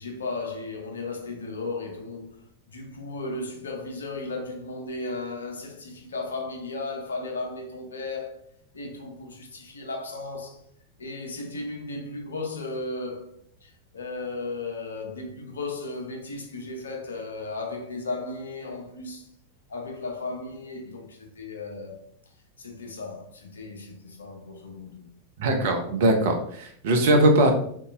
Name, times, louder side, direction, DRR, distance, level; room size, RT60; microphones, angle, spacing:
voice 1, 0.0-2.4 2.7-8.4 8.7-10.6 11.0-19.3 19.7-21.9 22.6-25.1, left 3 dB, 75° left, 0.7 m, -35 dB
voice 2, 25.4-27.5, right 1 dB, 60° right, 0.7 m, -20 dB
3.9 x 2.7 x 2.5 m
figure-of-eight pair, 90°, 0 cm